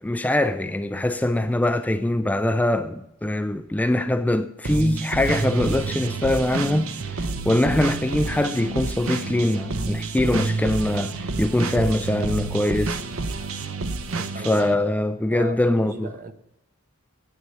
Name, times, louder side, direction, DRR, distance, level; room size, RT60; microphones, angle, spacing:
voice 1, 0.0-11.1 11.4-13.0 14.5-16.1, left 1 dB, 5° left, 0.4 m, -23 dB
sound 1, 4.6-14.7, right 3 dB, 75° right, 0.9 m, -29 dB
voice 2, 14.0-14.9 15.3-16.3, right 2 dB, 40° right, 1.0 m, -38 dB
9.9 x 8.0 x 9.1 m
head